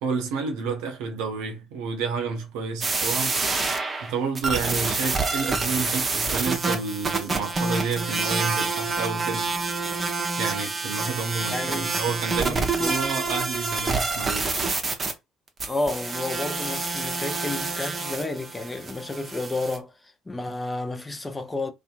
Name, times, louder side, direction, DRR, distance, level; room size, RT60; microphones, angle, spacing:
voice 1, 0.0-9.5 10.4-14.5, right 5 dB, 65° right, 0.7 m, -30 dB
sound 1, 2.8-15.1 15.6-19.8, right 3 dB, 30° right, 0.7 m, -27 dB
voice 2, 11.5-11.9 12.4-13.0 15.7-21.7, left 2 dB, 20° left, 0.6 m, -31 dB
2.6 x 2.4 x 2.5 m
figure-of-eight pair, 50°, 0 cm